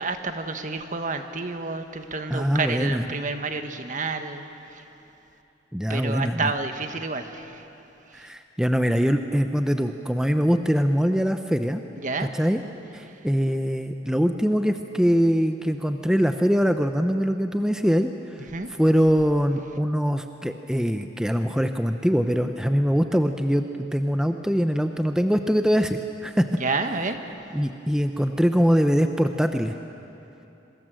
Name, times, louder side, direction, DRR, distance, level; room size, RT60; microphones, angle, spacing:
voice 1, 0.0-4.5 4.7-4.8 5.9-7.6 8.1-8.3 12.0-12.3 13.1-13.2 18.4-18.7 26.6-27.2, right 3 dB, 45° right, 7 dB, 1.5 m, -30 dB
voice 2, 2.3-3.1 5.7-6.5 8.1-11.8 12.2-12.6 12.9-18.1 18.8-26.4 27.5-29.7, equal, 5° right, 6 dB, 0.7 m, -23 dB
26.5 x 24.0 x 7.7 m, 2.9 s
head